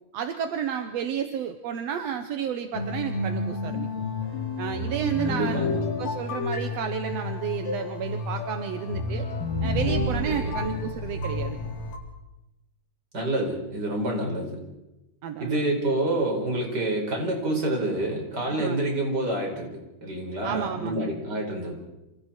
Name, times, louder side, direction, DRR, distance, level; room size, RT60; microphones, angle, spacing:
voice 1, 0.1-3.9 4.6-9.3 9.6-11.6 15.2-15.6 18.5-18.8 20.4-21.1, right 8 dB, 65° right, 7 dB, 1.9 m, -31 dB
sound 1, 2.7-12.0, left 2 dB, 75° left, 4.9 m, -30 dB
voice 2, 5.3-5.8 10.2-10.6 13.1-14.6 15.4-19.7 20.0-21.7, right 1 dB, 30° right, 1 dB, 5.3 m, -28 dB
27.5 x 27.0 x 4.5 m, 0.98 s
omnidirectional pair, 3.9 m